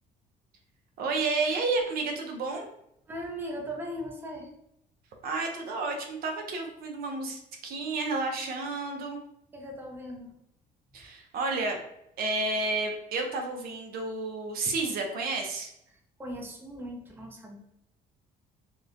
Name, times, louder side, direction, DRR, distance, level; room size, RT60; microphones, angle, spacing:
voice 1, 1.0-2.7 5.2-9.2 10.9-11.8 12.2-15.7, right 3 dB, 60° right, 2 dB, 0.5 m, -31 dB
voice 2, 3.1-4.5 9.5-10.3 16.2-17.6, equal, 10° right, 1 dB, 0.5 m, -38 dB
2.9 x 2.0 x 2.4 m, 0.77 s
cardioid pair, 110°, 17 cm